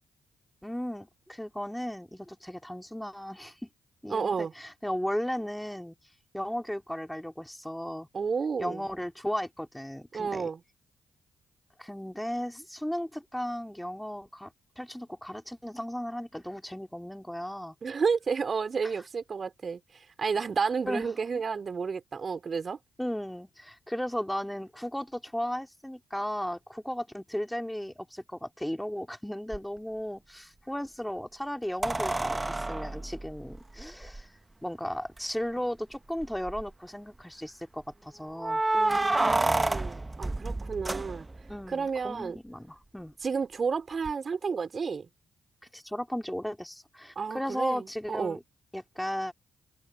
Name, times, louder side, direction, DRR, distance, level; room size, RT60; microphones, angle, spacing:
voice 1, 0.6-3.7 4.0-5.9 6.3-8.1 8.6-10.5 11.8-17.7 20.8-21.2 23.0-34.3 34.6-38.6 41.5-43.1 45.7-48.4 48.7-49.3, equal, 5° left, 4.4 m, -35 dB
voice 2, 4.1-4.5 8.1-8.9 10.1-10.6 17.8-22.8 38.7-41.3 41.7-42.4 43.2-45.1 47.1-48.4, right 5 dB, 45° right, 4.7 m, -31 dB
sound 1, 29.5-29.6 31.8-34.2 35.2-35.3 35.6-35.7 36.2-36.7 38.4-41.6 44.0-44.1, right 2 dB, 20° right, 1.1 m, -29 dB
hypercardioid pair, 45°, 0 cm